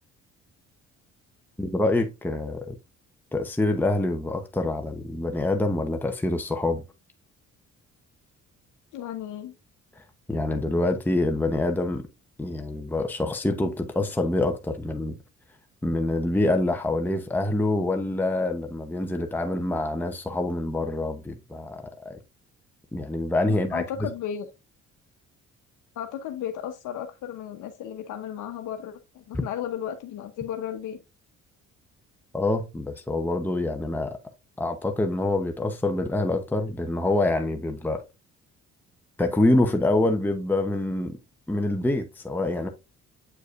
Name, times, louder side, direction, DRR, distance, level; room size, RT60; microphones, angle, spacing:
voice 1, 1.6-2.8 3.3-6.8 10.0-12.1 12.4-15.2 15.8-22.2 22.9-24.1 32.3-34.2 34.6-38.0 39.2-41.2 41.5-42.7, left 2 dB, 5° left, 0.8 m, -26 dB
voice 2, 8.9-9.5 23.5-24.5 26.0-31.0, left 9 dB, 80° left, 0.9 m, -34 dB
8.2 x 4.7 x 2.5 m
cardioid pair, 90°, 30 cm